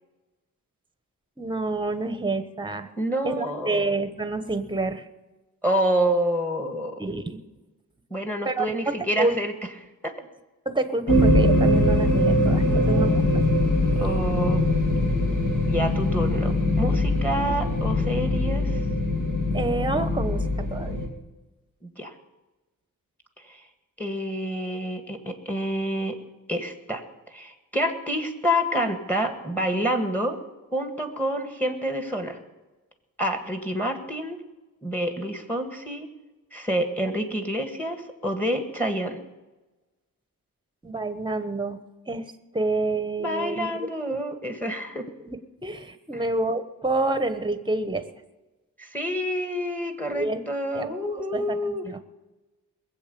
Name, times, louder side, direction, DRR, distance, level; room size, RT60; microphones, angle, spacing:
voice 1, 1.4-2.9 3.2-5.0 7.0-7.4 8.4-9.4 10.6-13.4 19.5-21.0 40.8-41.8 42.1-44.2 45.2-48.1 50.0-50.4 50.7-50.9 51.3-52.0, right 2 dB, 15° right, 10 dB, 1.1 m, -28 dB
voice 2, 3.0-3.8 5.6-7.0 8.1-9.5 10.0-10.1 12.7-13.2 14.0-14.7 15.7-18.8 21.8-22.1 23.4-23.7 24.0-26.2 26.5-30.4 30.7-32.4 33.2-34.4 34.8-36.1 36.5-39.2 43.2-45.1 46.1-46.2 48.8-51.8, equal, 5° left, 6 dB, 1.7 m, -28 dB
sound 1, 11.1-21.1, left 1 dB, 60° left, 2.9 m, -22 dB
21.0 x 8.1 x 6.9 m, 1.1 s
wide cardioid pair, 115°, 35 cm